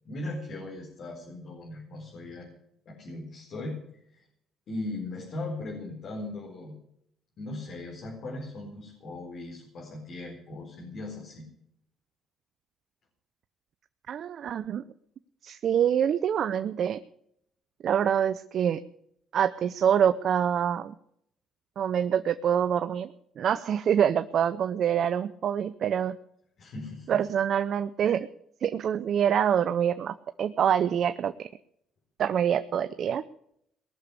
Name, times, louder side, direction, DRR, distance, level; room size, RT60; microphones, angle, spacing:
voice 1, 0.0-2.5 2.9-4.3 4.7-6.7 7.4-11.4 26.6-27.2, left 2 dB, 60° left, 0 dB, 4.3 m, -38 dB
voice 2, 14.1-14.8 15.4-17.0 17.8-18.8 19.3-20.9 21.8-26.2 27.1-28.3 28.6-31.3 32.2-33.2, right 9 dB, 60° right, 12 dB, 0.6 m, -26 dB
19.0 x 6.9 x 9.8 m, 0.73 s
supercardioid pair, 75°, 0 cm